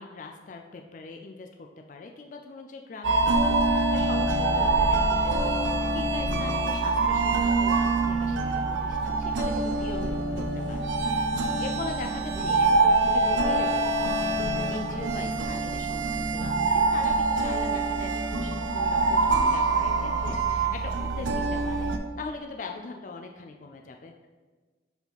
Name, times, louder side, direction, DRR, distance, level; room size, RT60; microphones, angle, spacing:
voice 1, 0.0-21.9 22.2-24.1, left 3 dB, 45° left, 3 dB, 0.4 m, -41 dB
sound 1, 3.0-22.0, right 3 dB, 85° right, 0.5 m, -25 dB
5.2 x 4.8 x 3.9 m, 1.3 s
head